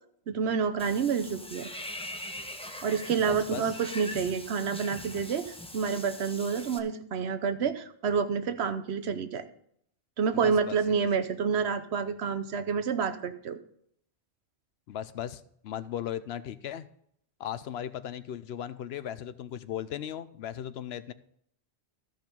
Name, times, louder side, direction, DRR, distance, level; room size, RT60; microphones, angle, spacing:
voice 1, 0.3-1.7 2.8-9.4 10.2-13.6, right 6 dB, 75° right, 9 dB, 1.1 m, -28 dB
Water / Bathtub (filling or washing), 0.8-6.8, left 1 dB, 5° left, 0.6 m, -42 dB
voice 2, 3.2-3.7 10.3-10.8 14.9-16.9 17.4-21.1, left 10 dB, 75° left, 14 dB, 0.8 m, -37 dB
13.5 x 5.3 x 5.2 m, 0.68 s
omnidirectional pair, 1.1 m